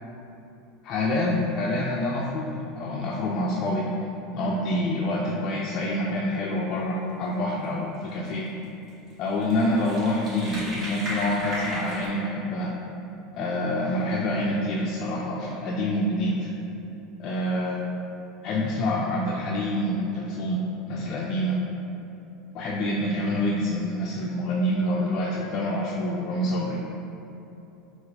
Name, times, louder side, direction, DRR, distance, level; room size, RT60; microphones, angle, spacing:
voice 1, 0.8-8.5 9.2-12.7 13.4-16.6 17.2-17.8 18.4-21.6 22.5-26.8, left 1 dB, 50° left, -3 dB, 0.3 m, -27 dB
sound 1, 8.1-8.3 8.9-9.0 9.3-12.1, equal, 40° right, 0.9 m, -34 dB
3.9 x 2.3 x 2.7 m, 2.9 s
supercardioid pair, 115°, 0 cm